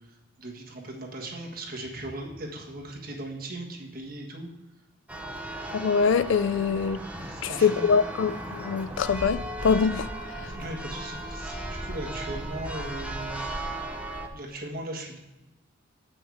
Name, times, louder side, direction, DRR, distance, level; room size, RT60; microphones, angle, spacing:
voice 1, 0.0-4.5 7.1-7.9 10.3-13.5 14.3-15.2, right 1 dB, 45° right, 1.5 m, -38 dB
Church bell, 5.1-14.3, right 1 dB, 5° right, 0.7 m, -36 dB
voice 2, 5.7-7.0 7.4-10.1, left 6 dB, 70° left, 0.4 m, -24 dB
7.8 x 6.2 x 4.7 m
head